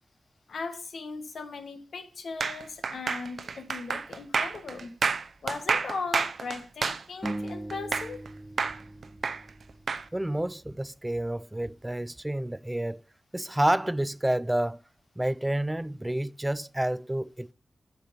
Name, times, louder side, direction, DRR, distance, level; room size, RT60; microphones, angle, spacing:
voice 1, 0.5-4.9 5.4-8.2, left 4 dB, 75° left, 1.3 m, -38 dB
sound 1, 2.4-8.3 8.6-10.0, right 5 dB, 65° right, 0.6 m, -29 dB
sound 2, 7.2-10.5, right 1 dB, 5° left, 1.1 m, -40 dB
voice 2, 10.1-13.0 13.3-14.8 15.2-17.5, right 1 dB, 15° right, 0.4 m, -29 dB
7.3 x 6.7 x 5.3 m
cardioid pair, 65°, 0 cm